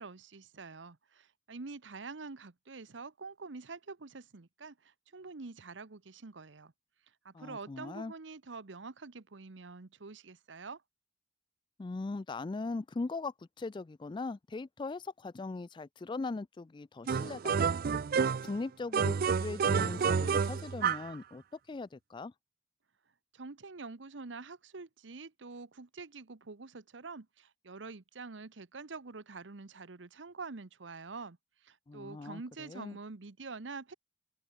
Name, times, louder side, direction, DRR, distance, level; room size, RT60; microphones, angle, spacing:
voice 1, 0.0-6.7 7.2-10.8 23.3-31.4 31.6-33.9, right 4 dB, 90° right, 1.0 m, -46 dB
voice 2, 7.3-8.1 11.8-17.7 18.4-22.3 31.9-33.0, left 3 dB, 25° left, 0.3 m, -40 dB
sound 1, 17.1-18.6 18.9-21.1, right 6 dB, 55° right, 0.4 m, -29 dB
open air
head